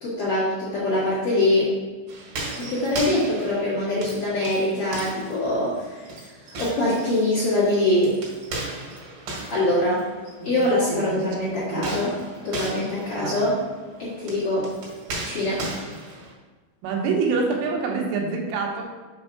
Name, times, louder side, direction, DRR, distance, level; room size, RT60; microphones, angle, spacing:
voice 1, 0.0-1.7 2.6-6.1 6.6-8.2 9.5-10.1 10.4-12.1 12.4-13.6 14.0-14.7 15.2-15.7, left 1 dB, 80° left, -9 dB, 1.3 m, -23 dB
sound 1, 2.1-10.7 11.7-16.3, right 2 dB, 65° right, 4.0 m, -36 dB
voice 2, 10.9-11.4 11.7-12.0 13.2-13.5 16.8-18.8, right 4 dB, 85° right, 1 dB, 3.5 m, -26 dB
7.4 x 3.6 x 5.8 m, 1.4 s
omnidirectional pair, 5.6 m